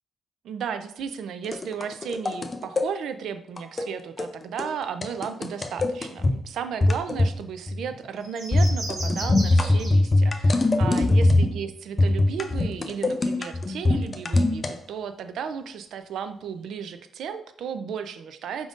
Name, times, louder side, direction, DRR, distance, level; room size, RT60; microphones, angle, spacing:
voice 1, 0.4-18.7, right 7 dB, 70° right, 9 dB, 0.3 m, -34 dB
sound 1, 1.4-2.9 3.6-3.9 4.2-4.3 4.6-4.7 5.0-6.4 6.8-7.4 7.7-7.9 8.5-11.6 12.0-14.7, left 2 dB, 25° left, 0.4 m, -22 dB
sound 2, 8.2-10.1 10.4-10.5, right 2 dB, 50° right, 1.2 m, -36 dB
5.1 x 3.5 x 2.5 m, 0.67 s
cardioid pair, 140°, 0 cm